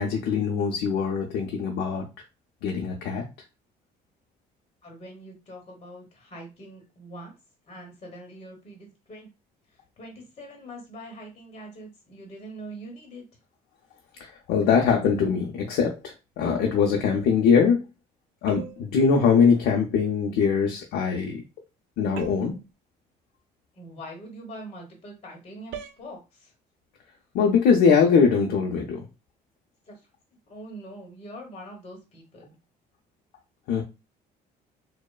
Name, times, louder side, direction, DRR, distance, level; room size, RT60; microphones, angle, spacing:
voice 1, 0.0-2.0 2.6-3.2 14.2-17.8 18.4-21.4 22.0-22.6 27.3-29.0 33.7-33.8, left 6 dB, 85° left, 0 dB, 0.5 m, -22 dB
voice 2, 4.8-7.3 7.7-9.3 10.0-13.2 23.8-26.5 29.9-30.0 30.5-32.6, right 1 dB, 35° left, 1 dB, 0.9 m, -43 dB
sound 1, 18.5-19.0 22.2-22.6 25.7-26.1, right 8 dB, 85° right, 0.4 m, -39 dB
3.0 x 2.0 x 2.2 m, 0.28 s
cardioid pair, 110°, 17 cm